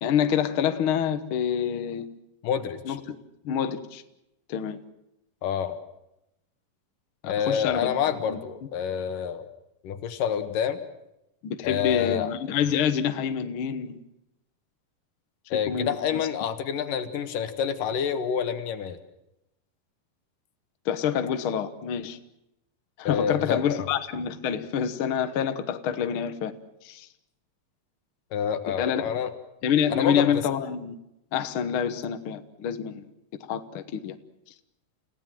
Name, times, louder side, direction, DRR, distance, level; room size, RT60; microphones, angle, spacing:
voice 1, 0.0-2.1 2.8-3.1 3.4-4.0 4.5-4.8 7.2-8.0 8.3-8.4 11.4-14.0 15.7-16.3 20.8-22.2 23.0-26.5 26.8-27.1 28.7-29.0 29.6-31.0 31.3-33.0 33.5-34.2, left 8 dB, 55° left, 9 dB, 1.5 m, -27 dB
voice 2, 2.4-3.0 5.4-5.8 7.2-9.5 9.8-10.8 11.6-12.3 15.5-19.0 23.0-23.9 28.3-29.3 29.9-30.4, left 8 dB, 80° left, 9 dB, 3.1 m, -28 dB
30.0 x 17.0 x 7.5 m, 0.87 s
omnidirectional pair, 3.8 m